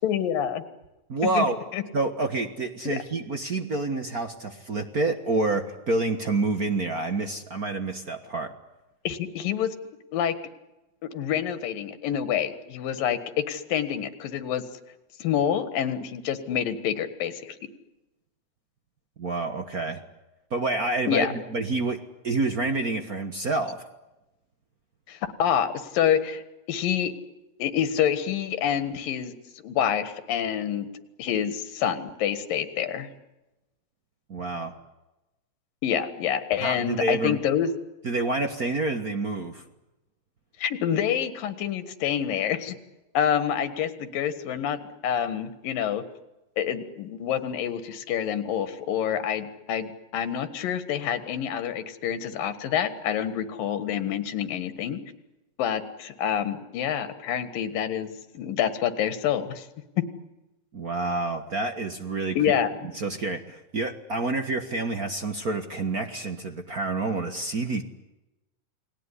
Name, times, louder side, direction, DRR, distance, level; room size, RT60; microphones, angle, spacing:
voice 1, 0.0-0.7 1.4-1.5 1.7-1.8 2.9-3.0 9.1-9.8 10.1-10.4 11.0-14.6 15.2-17.6 21.1-21.3 25.1-26.4 26.7-27.1 27.6-29.3 29.6-30.9 31.2-33.1 35.8-37.7 40.6-42.8 43.2-46.0 46.6-55.0 55.6-58.1 58.4-59.7 62.4-62.7, left 9 dB, 85° left, 11 dB, 3.4 m, -27 dB
voice 2, 1.1-1.6 1.9-8.5 19.2-20.0 20.5-22.0 22.2-23.8 34.3-34.7 36.6-37.4 38.0-39.6 60.7-62.4 62.9-67.8, right 2 dB, 50° right, 7 dB, 1.1 m, -28 dB
30.0 x 20.0 x 9.8 m, 1.0 s
omnidirectional pair, 3.9 m